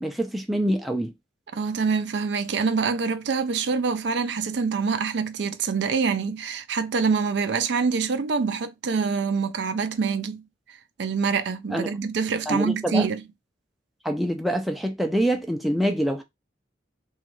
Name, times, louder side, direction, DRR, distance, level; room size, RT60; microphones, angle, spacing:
voice 1, 0.0-1.1 11.7-11.9 12.5-13.1 14.0-16.2, equal, ahead, 0.4 m, -25 dB
voice 2, 1.5-10.4 10.7-13.2, right 5 dB, 65° right, 0.4 m, -25 dB
3.0 x 2.3 x 3.0 m
head